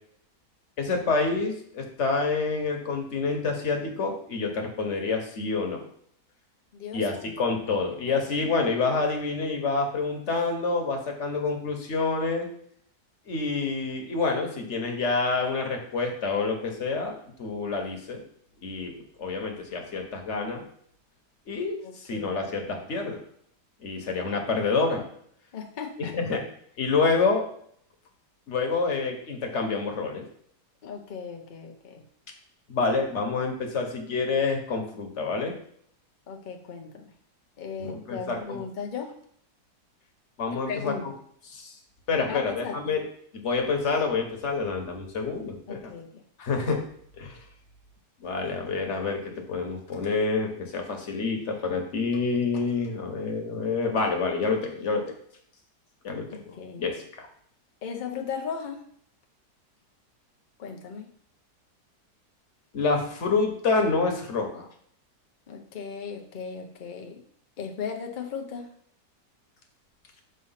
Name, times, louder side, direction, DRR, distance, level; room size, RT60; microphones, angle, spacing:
voice 1, 0.8-5.8 6.9-12.5 13.3-17.1 17.4-18.2 18.6-18.9 19.2-20.6 21.5-23.2 23.8-25.1 26.0-26.4 26.8-27.5 28.5-30.2 32.7-35.5 37.8-38.6 40.4-40.9 41.5-41.7 42.1-43.0 43.3-45.9 46.4-46.8 47.2-47.4 48.2-55.2 56.0-56.4 56.8-57.3 62.7-64.7, left 4 dB, 45° left, 3 dB, 1.2 m, -27 dB
voice 2, 6.7-7.3 8.1-8.5 21.8-22.4 22.7-22.9 25.5-26.2 30.8-32.0 36.3-37.1 37.6-39.1 40.7-41.0 42.3-42.8 45.7-46.2 56.3-56.8 57.8-58.8 60.6-61.1 65.5-67.2 67.6-68.7, left 6 dB, 70° left, 2 dB, 0.4 m, -37 dB
6.9 x 3.1 x 5.6 m, 0.64 s
omnidirectional pair, 1.9 m